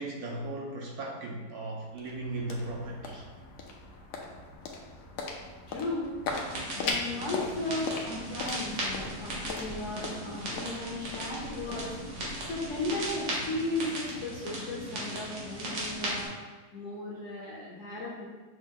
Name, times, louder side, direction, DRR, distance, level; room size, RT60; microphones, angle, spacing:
voice 1, 0.0-3.2, right 2 dB, 70° right, -1 dB, 1.0 m, -37 dB
sound 1, 1.5-13.9, left 3 dB, 75° left, 1.2 m, -40 dB
voice 2, 5.7-6.1 6.7-11.9 12.5-16.3 16.7-18.3, left 2 dB, 55° left, -5 dB, 0.9 m, -35 dB
sound 2, 6.3-16.3, right 1 dB, 90° right, 1.8 m, -37 dB
6.1 x 2.2 x 3.7 m, 1.3 s
omnidirectional pair, 1.9 m